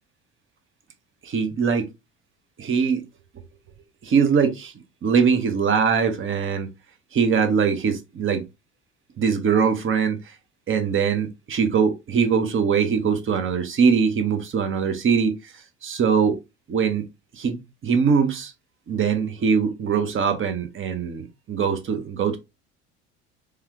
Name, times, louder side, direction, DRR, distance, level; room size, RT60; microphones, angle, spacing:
voice 1, 1.2-1.9 2.6-3.0 3.3-3.4 4.0-4.7 5.0-6.7 7.1-8.4 9.2-10.3 10.7-16.4 16.7-17.0 17.3-18.5 18.9-22.4, right 6 dB, 35° right, 1.0 m, -22 dB
3.3 x 2.4 x 3.0 m
hypercardioid pair, 65°, 34 cm